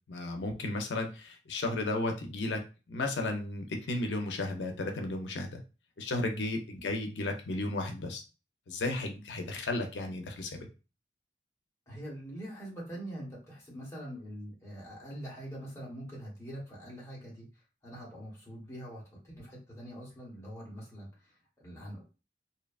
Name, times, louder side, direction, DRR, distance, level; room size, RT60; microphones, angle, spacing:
voice 1, 0.1-2.6 2.9-5.6 6.0-8.2 8.7-10.7, left 2 dB, 85° left, 4 dB, 0.5 m, -34 dB
voice 2, 11.9-17.5 17.8-22.0, equal, 15° left, -5 dB, 1.0 m, -44 dB
2.7 x 2.2 x 2.3 m, 0.32 s
head